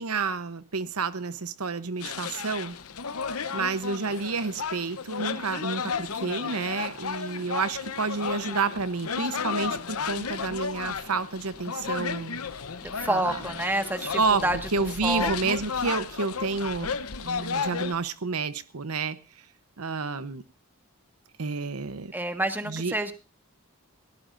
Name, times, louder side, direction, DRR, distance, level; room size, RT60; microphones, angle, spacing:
voice 1, 0.0-2.8 3.5-12.4 13.0-13.4 14.1-14.4 14.7-17.0 17.2-19.2 19.8-20.4 21.4-22.1 22.7-23.0, right 4 dB, 80° right, 12 dB, 0.9 m, -29 dB
sound 1, 2.0-17.9, left 6 dB, 75° left, 0.9 m, -33 dB
voice 2, 12.8-14.6 15.0-15.3 22.1-23.1, right 1 dB, 10° right, 6 dB, 1.6 m, -28 dB
20.5 x 17.0 x 2.6 m, 0.31 s
head